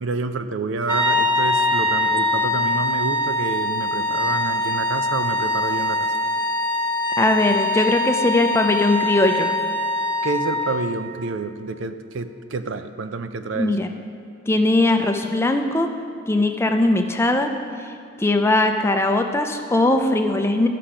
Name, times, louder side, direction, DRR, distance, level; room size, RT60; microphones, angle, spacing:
voice 1, 0.0-6.1 10.2-13.9, right 3 dB, 70° right, 10 dB, 0.5 m, -28 dB
sound 1, 0.9-10.8, left 2 dB, 10° right, 1.4 m, -23 dB
voice 2, 7.2-9.5 13.5-13.9 14.5-15.9 16.3-17.5 18.2-20.7, left 2 dB, 15° left, 5 dB, 0.5 m, -20 dB
13.0 x 5.8 x 5.0 m, 2.3 s
head